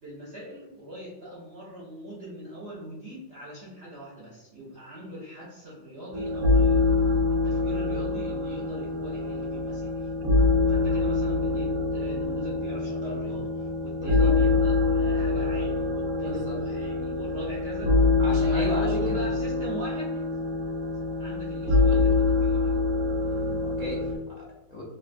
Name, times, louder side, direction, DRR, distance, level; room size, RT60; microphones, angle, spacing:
voice 1, 0.0-7.0 7.3-10.1 10.7-18.0 18.3-20.3 21.2-22.8, equal, 70° right, -6 dB, 0.6 m, -40 dB
sound 1, 6.1-24.1, left 3 dB, 85° right, 1.4 m, -25 dB
voice 2, 14.0-14.4 16.2-16.6 18.2-19.2 23.1-24.8, equal, 85° left, -6 dB, 0.3 m, -36 dB
3.4 x 2.6 x 2.5 m, 1.1 s
omnidirectional pair, 2.0 m